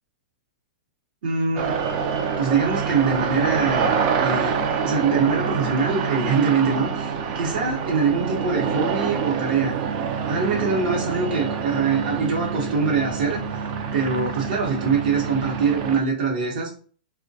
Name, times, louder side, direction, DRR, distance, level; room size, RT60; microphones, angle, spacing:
voice 1, 1.2-1.8 2.4-3.9 4.2-9.7 10.3-13.4 13.9-16.8, right 5 dB, 65° right, -1 dB, 0.8 m, -23 dB
sound 1, 1.6-16.0, right 6 dB, 45° right, 0.4 m, -26 dB
2.2 x 2.1 x 2.6 m, 0.42 s
hypercardioid pair, 130°, 5 cm